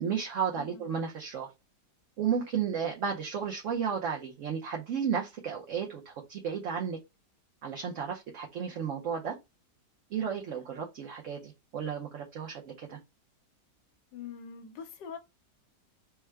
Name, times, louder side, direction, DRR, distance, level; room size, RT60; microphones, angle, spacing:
voice 1, 0.0-1.5 2.2-7.0 7.6-9.4 10.1-13.0, right 7 dB, 60° right, 0.8 m, -33 dB
voice 2, 0.6-0.9 14.1-15.2, left 7 dB, 85° left, 1.3 m, -43 dB
3.5 x 2.1 x 4.3 m
omnidirectional pair, 1.8 m